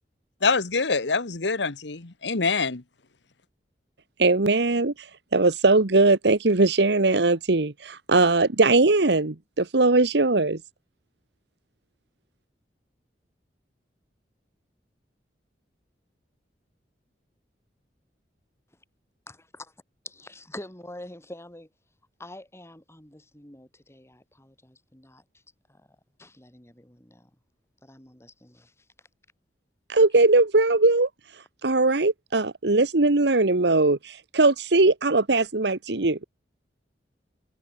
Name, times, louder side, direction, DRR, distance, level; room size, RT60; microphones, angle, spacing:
voice 1, 0.4-2.8, left 4 dB, 80° left, 1.4 m, -25 dB
voice 2, 4.2-5.1 5.3-10.6 29.9-31.1 31.6-36.2, right 3 dB, 70° right, 1.3 m, -20 dB
voice 3, 19.3-19.7 20.0-21.7 22.2-25.2 26.2-27.3 27.8-28.7, left 1 dB, 15° left, 5.8 m, -45 dB
head